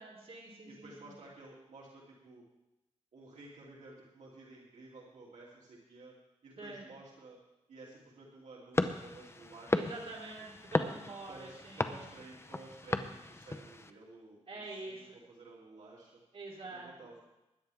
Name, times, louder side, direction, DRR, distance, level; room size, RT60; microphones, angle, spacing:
voice 1, 0.0-1.2 6.6-6.9 9.7-12.1 14.5-15.2 16.3-17.1, right 2 dB, 55° right, -3 dB, 3.6 m, -46 dB
voice 2, 0.7-2.4 3.1-6.1 6.4-7.4 7.7-10.0 11.3-16.2 16.7-17.2, right 2 dB, 85° right, -4 dB, 2.9 m, -53 dB
sound 1, 8.7-13.9, left 2 dB, 20° left, 0.8 m, -36 dB
20.5 x 10.5 x 3.6 m, 0.96 s
wide cardioid pair, 90°, 12 cm